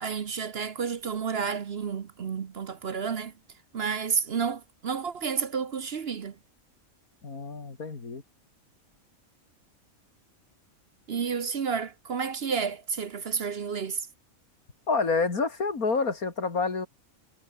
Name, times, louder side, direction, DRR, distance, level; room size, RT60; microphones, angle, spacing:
voice 1, 0.0-3.3 3.7-6.3 11.1-14.0, right 6 dB, 50° right, 1.1 m, -31 dB
voice 2, 7.2-8.2 14.9-16.9, left 4 dB, 85° left, 3.3 m, -28 dB
omnidirectional pair, 1.5 m